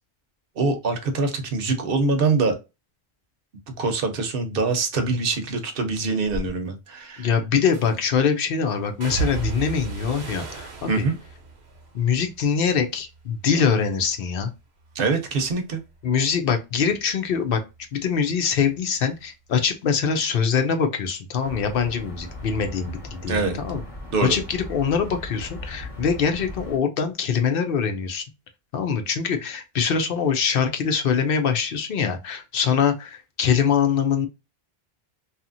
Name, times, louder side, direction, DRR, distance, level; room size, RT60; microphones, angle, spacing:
voice 1, 0.6-2.6 3.7-7.3 10.9-11.2 14.9-15.8 23.3-23.6 24.1-24.4, right 3 dB, 65° right, 6 dB, 0.9 m, -24 dB
sound 1, 6.3-6.5 7.7-8.2 9.0-13.2 13.6-14.2 14.6-17.8 18.1-19.2 19.5-19.7, right 5 dB, 90° right, 1.0 m, -36 dB
voice 2, 7.2-10.9 11.9-14.5 16.0-17.6 17.9-23.8 24.2-28.2 28.7-34.3, left 6 dB, 65° left, 6 dB, 0.7 m, -23 dB
sound 2, 21.4-26.8, left 1 dB, 35° left, 0.9 m, -38 dB
2.8 x 2.4 x 2.5 m, 0.26 s
omnidirectional pair, 1.1 m